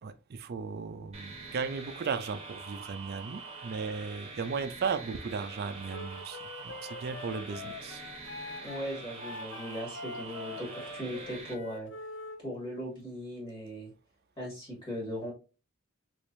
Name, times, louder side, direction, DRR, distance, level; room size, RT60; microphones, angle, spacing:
voice 1, 0.0-8.0, right 5 dB, 50° right, 0.4 m, -36 dB
sound 1, 1.1-11.5, right 3 dB, 30° right, 1.1 m, -45 dB
Wind instrument woodwind instrument, 5.9-12.4, left 3 dB, 55° left, 0.5 m, -44 dB
voice 2, 8.6-11.9 12.4-13.9 14.4-15.3, equal, 25° left, 1.8 m, -38 dB
3.4 x 3.3 x 2.6 m
head